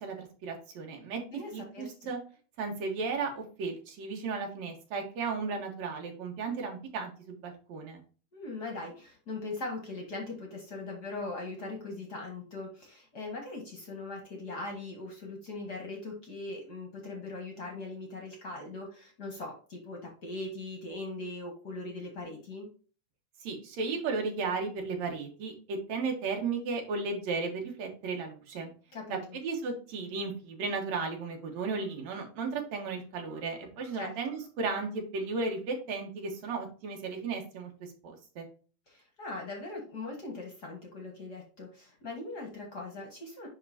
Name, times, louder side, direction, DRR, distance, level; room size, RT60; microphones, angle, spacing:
voice 1, 0.0-1.2 1.5-2.2 2.6-8.0 23.4-28.7 29.1-38.5, right 4 dB, 60° right, 2 dB, 2.5 m, -35 dB
voice 2, 1.3-2.1 8.3-22.7 28.9-29.4 33.9-34.1 38.9-43.5, left 2 dB, 45° left, 1 dB, 1.4 m, -40 dB
10.5 x 3.7 x 2.8 m, 0.38 s
omnidirectional pair, 3.7 m